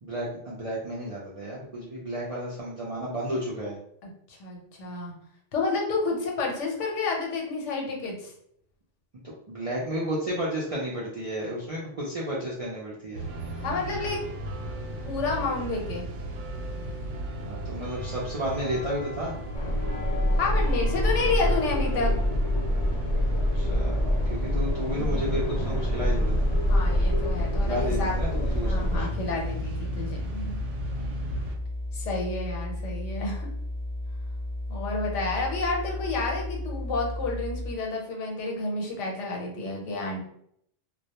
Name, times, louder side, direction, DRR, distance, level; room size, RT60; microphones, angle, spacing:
voice 1, 0.0-3.8 9.5-13.2 17.4-19.3 23.5-26.5 27.7-29.1 30.9-31.5, equal, 55° right, -6 dB, 0.4 m, -32 dB
voice 2, 4.0-5.1 5.5-8.3 13.6-14.2 15.0-16.1 20.3-22.1 26.7-28.2 28.6-30.6 31.9-33.5 34.7-40.2, left 3 dB, 85° left, 0 dB, 1.0 m, -30 dB
sound 1, 13.1-31.5, right 1 dB, 90° right, 0.9 m, -36 dB
sound 2, 19.5-29.0, equal, 60° left, 0.4 m, -26 dB
sound 3, 26.2-37.7, left 1 dB, 20° right, 0.7 m, -34 dB
2.2 x 2.1 x 2.8 m, 0.69 s
omnidirectional pair, 1.2 m